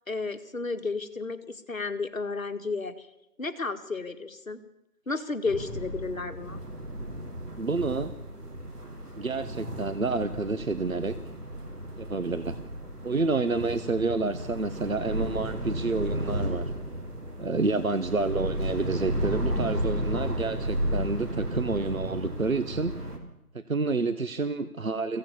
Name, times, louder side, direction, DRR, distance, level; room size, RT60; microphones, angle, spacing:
voice 1, 0.1-3.1 3.4-4.6 5.1-6.6, left 3 dB, 60° left, 7 dB, 2.0 m, -32 dB
sound 1, 5.4-23.2, right 1 dB, 80° right, 4.5 m, -33 dB
voice 2, 7.6-8.1 9.2-11.2 12.0-12.6 13.0-16.7 17.4-22.9 23.5-25.2, right 3 dB, 60° right, 11 dB, 1.2 m, -29 dB
23.0 x 16.5 x 7.2 m, 0.88 s
figure-of-eight pair, 165°, 46 cm